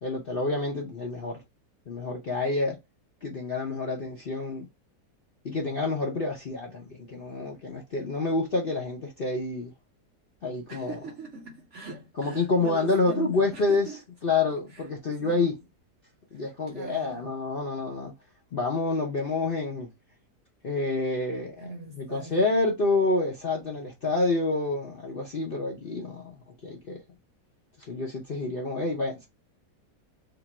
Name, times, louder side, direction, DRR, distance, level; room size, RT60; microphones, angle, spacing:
voice 1, 0.0-1.4 1.9-2.8 3.2-4.7 5.4-9.7 10.4-11.0 12.2-15.5 16.3-18.1 18.5-19.9 20.6-26.4 26.6-27.0 27.8-29.2, left 3 dB, 50° left, 0.7 m, -28 dB
voice 2, 10.7-14.0 14.7-14.8 15.2-15.5 16.7-17.2 21.6-22.5, right 3 dB, 55° right, 0.9 m, -40 dB
3.0 x 2.4 x 4.1 m
omnidirectional pair, 1.8 m